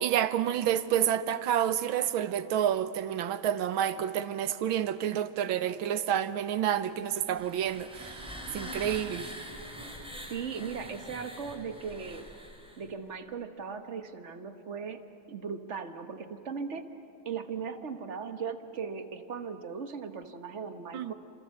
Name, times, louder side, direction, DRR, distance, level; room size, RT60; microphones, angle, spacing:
voice 1, 0.0-9.3 20.9-21.1, right 10 dB, 75° right, 1.7 m, -29 dB
sound 1, 7.1-12.9, equal, 5° right, 3.0 m, -44 dB
voice 2, 10.3-12.3 12.8-16.9 17.2-21.1, right 6 dB, 40° right, 1.3 m, -38 dB
29.5 x 26.5 x 7.6 m
omnidirectional pair, 2.3 m